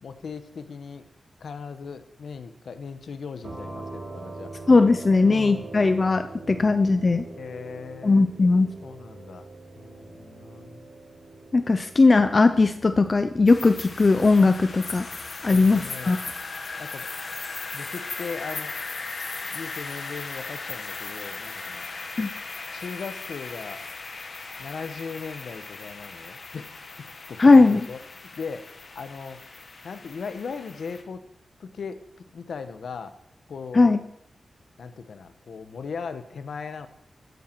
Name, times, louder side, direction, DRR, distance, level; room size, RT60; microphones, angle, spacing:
voice 1, 0.0-1.1 1.4-4.5 5.2-5.7 6.4-6.7 7.4-8.3 8.8-9.5 9.8-10.8 15.5-16.2 16.8-17.0 17.7-18.8 19.5-21.9 22.7-23.8 24.6-26.7 27.3-28.7 28.9-29.4 29.8-31.2 31.6-32.0 32.3-33.1 33.5-34.0 34.8-36.9, left 5 dB, 80° left, 9 dB, 1.0 m, -38 dB
sound 1, 3.4-12.9, right 2 dB, 55° right, 3.0 m, -42 dB
voice 2, 4.7-7.2 8.0-8.7 11.5-15.1 15.4-16.2 22.2-22.3 27.4-27.9 33.7-34.0, left 3 dB, 35° left, 9 dB, 0.6 m, -18 dB
sound 2, 13.5-31.0, left 3 dB, 55° left, 1.5 m, -37 dB
13.5 x 9.3 x 4.6 m, 0.74 s
wide cardioid pair, 105°, 0 cm